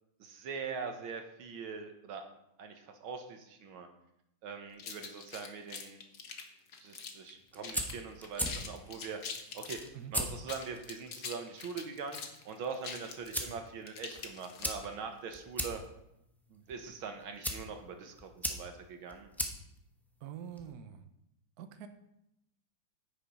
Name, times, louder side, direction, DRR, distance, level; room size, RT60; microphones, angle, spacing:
voice 1, 0.2-2.3 2.6-3.9 4.4-6.0 6.8-9.2 9.5-9.8 10.1-12.2 12.5-15.8 16.5-19.3, right 5 dB, 90° right, 5 dB, 2.0 m, -42 dB
sound 1, 4.8-7.3 7.6-8.0 8.2-9.9 10.4-14.9, left 6 dB, 55° left, 1.5 m, -44 dB
sound 2, 7.3-20.7, equal, ahead, 0.5 m, -41 dB
voice 2, 20.2-21.0 21.6-21.9, right 9 dB, 60° right, 8 dB, 1.2 m, -45 dB
9.1 x 9.0 x 5.3 m, 0.82 s
omnidirectional pair, 2.2 m